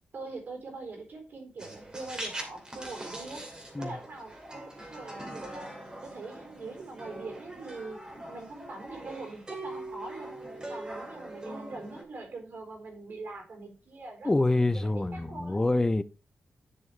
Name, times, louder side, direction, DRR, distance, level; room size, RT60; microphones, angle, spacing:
voice 1, 0.1-5.7 6.0-8.0 8.3-10.3 10.7-15.7, right 3 dB, 60° right, 4.0 m, -43 dB
sound 1, 1.6-12.0, right 1 dB, 20° right, 2.7 m, -42 dB
voice 2, 14.2-16.0, left 2 dB, 15° left, 0.6 m, -26 dB
10.5 x 6.3 x 3.3 m
wide cardioid pair, 115°, 3 cm